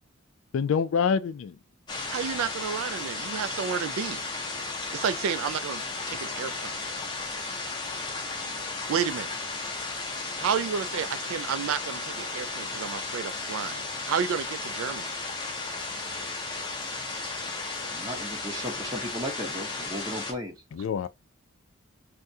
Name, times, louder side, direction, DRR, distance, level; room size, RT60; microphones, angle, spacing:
voice 1, 0.5-1.6 20.7-21.1, left 6 dB, 65° left, 0.3 m, -26 dB
sound 1, 1.9-20.3, left 3 dB, 20° left, 0.7 m, -34 dB
voice 2, 2.1-4.2 4.9-6.8 8.9-9.3 10.1-15.1, right 7 dB, 75° right, 0.3 m, -31 dB
voice 3, 17.9-20.6, equal, 20° right, 0.8 m, -35 dB
3.5 x 2.1 x 2.7 m
head